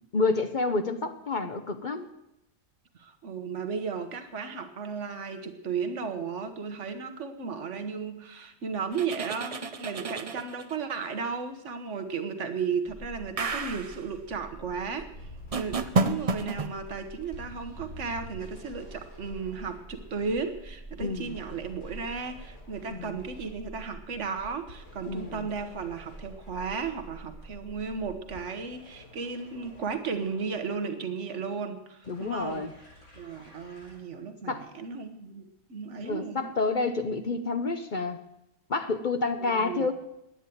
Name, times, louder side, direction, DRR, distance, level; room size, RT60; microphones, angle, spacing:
voice 1, 0.1-2.1 21.0-21.3 22.9-23.2 25.1-25.5 32.1-32.7 34.5-34.7 36.0-38.2 38.7-39.9, left 3 dB, 45° left, 9 dB, 0.7 m, -29 dB
voice 2, 3.0-15.1 15.5-32.6 33.1-36.5 39.4-39.9, right 5 dB, 55° right, 8 dB, 1.6 m, -34 dB
sound 1, 8.9-10.8 13.4-14.0 15.5-16.7, right 3 dB, 40° right, 0.5 m, -30 dB
sound 2, 12.9-28.4, right 2 dB, 5° right, 0.7 m, -47 dB
sound 3, 15.1-34.0, left 2 dB, 75° left, 4.3 m, -52 dB
10.0 x 10.0 x 9.2 m, 0.86 s
omnidirectional pair, 1.5 m